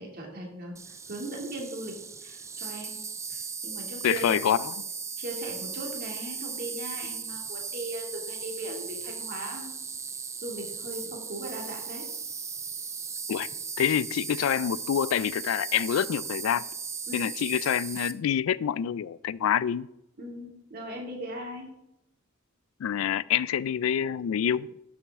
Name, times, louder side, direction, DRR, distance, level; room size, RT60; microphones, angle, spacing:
voice 1, 0.0-1.9 2.2-3.0 3.3-4.5 5.2-9.8 10.4-12.1 17.1-17.3 20.2-21.7, right 1 dB, 50° right, 0 dB, 2.4 m, -38 dB
Insect, 0.8-18.1, right 6 dB, 15° right, 0.4 m, -37 dB
voice 2, 4.0-4.8 13.3-13.5 13.8-16.7 17.1-19.9 22.8-24.7, left 9 dB, 90° left, 21 dB, 0.3 m, -26 dB
11.5 x 7.3 x 3.6 m, 0.87 s
head